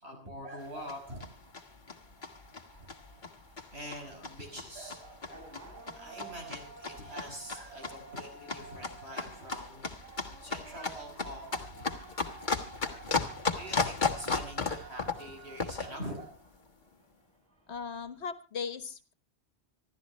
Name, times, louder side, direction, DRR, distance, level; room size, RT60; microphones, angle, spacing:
voice 1, 0.0-1.3 3.7-5.5 6.0-9.9 10.4-11.9 12.8-16.3, equal, 75° right, 2 dB, 5.9 m, -45 dB
sound 1, 0.6-16.0, left 4 dB, 45° left, 1.5 m, -36 dB
sound 2, 0.7-18.3, right 4 dB, 15° left, 7.8 m, -53 dB
voice 2, 17.7-19.1, left 6 dB, 85° left, 12 dB, 1.5 m, -38 dB
26.0 x 13.0 x 3.1 m, 0.33 s
omnidirectional pair, 1.1 m